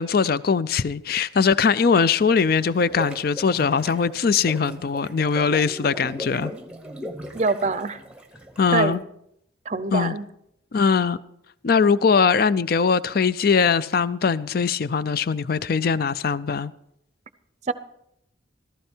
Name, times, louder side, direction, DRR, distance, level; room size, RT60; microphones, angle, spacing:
voice 1, 0.0-6.5 8.6-9.0 9.9-10.1 10.7-11.2 11.6-16.7, left 5 dB, 50° left, 0.4 m, -21 dB
sound 1, 2.2-8.9, equal, 5° right, 0.9 m, -38 dB
voice 2, 7.3-8.0 8.7-9.0 9.7-10.2 17.7-17.8, right 3 dB, 35° right, 0.6 m, -24 dB
15.5 x 14.0 x 4.5 m
head